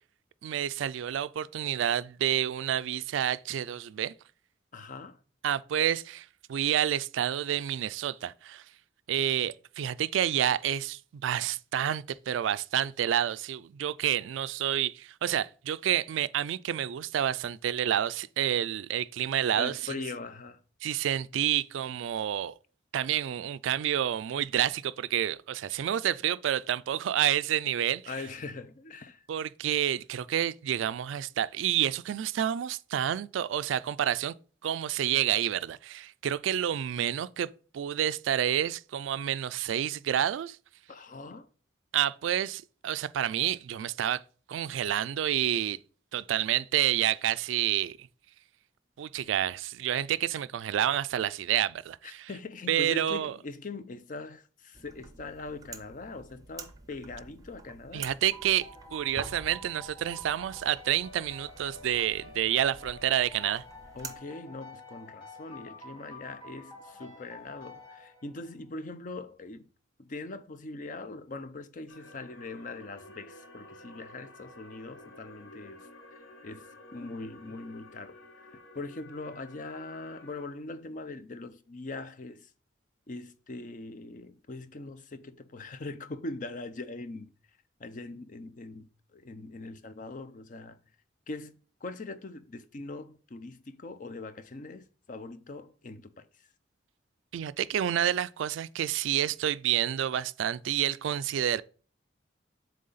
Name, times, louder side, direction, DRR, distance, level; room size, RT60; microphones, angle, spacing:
voice 1, 0.4-4.1 5.4-8.6 9.1-19.7 20.8-22.5 22.9-28.0 29.3-34.3 34.6-37.5 37.7-40.6 41.9-44.2 44.5-45.8 46.1-48.1 49.0-52.3 52.7-53.3 57.9-63.6 97.3-101.6, right 10 dB, 80° right, 0.3 m, -29 dB
voice 2, 4.7-5.2 19.6-20.6 28.1-29.2 40.9-41.5 52.0-58.1 63.9-69.7 70.0-75.9 76.4-76.6 76.9-82.5 83.1-87.3 87.8-90.8 91.3-96.5, left 3 dB, 45° left, 0.5 m, -42 dB
sound 1, 54.7-64.2, right 4 dB, 20° right, 0.6 m, -48 dB
sound 2, 58.3-68.7, left 2 dB, 25° left, 1.4 m, -49 dB
sound 3, 71.9-80.5, left 2 dB, 75° left, 1.0 m, -51 dB
7.6 x 3.4 x 4.0 m
head